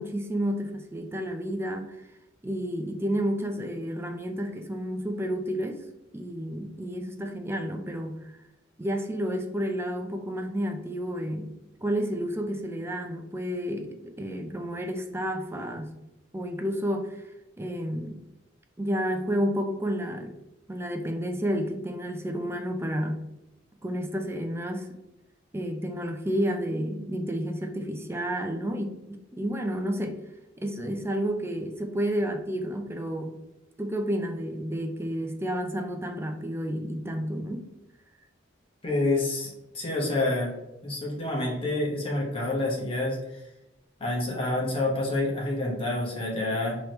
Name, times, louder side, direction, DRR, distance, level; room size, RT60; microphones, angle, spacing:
voice 1, 0.0-2.1 2.4-5.8 6.1-8.4 8.8-11.5 11.8-16.0 16.3-17.3 17.6-18.2 18.8-20.3 20.7-23.3 23.8-24.9 25.5-30.2 30.6-33.4 33.8-37.6, equal, 15° right, 5 dB, 0.4 m, -31 dB
voice 2, 38.8-40.5 40.8-43.2 44.0-46.8, left 2 dB, 30° left, -3 dB, 1.2 m, -28 dB
4.8 x 3.1 x 3.0 m, 0.90 s
head